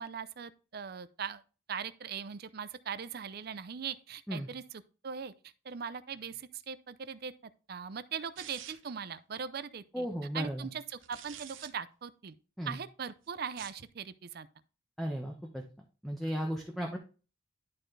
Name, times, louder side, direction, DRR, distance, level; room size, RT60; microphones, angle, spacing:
voice 1, 0.0-1.4 1.7-5.3 5.6-7.3 7.7-10.1 10.3-12.4 12.7-14.5, right 7 dB, 55° right, 0.5 m, -40 dB
sound 1, 8.4-9.0 10.9-11.7 13.4-13.9, right 10 dB, 90° right, 0.7 m, -48 dB
voice 2, 9.9-10.7 12.6-12.8 15.0-15.7 16.0-17.0, equal, ahead, 0.9 m, -35 dB
11.5 x 4.2 x 3.3 m
head